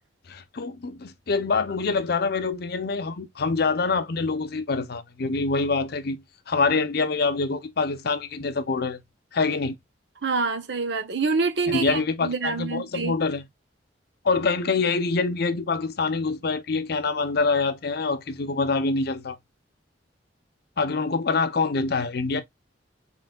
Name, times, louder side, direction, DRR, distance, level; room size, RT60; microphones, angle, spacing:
voice 1, 0.3-9.0 9.3-9.8 11.7-13.5 14.2-19.4 20.8-22.4, left 4 dB, 55° left, 0.6 m, -25 dB
voice 2, 10.2-13.1, right 4 dB, 70° right, 0.9 m, -26 dB
4.3 x 3.8 x 2.2 m
head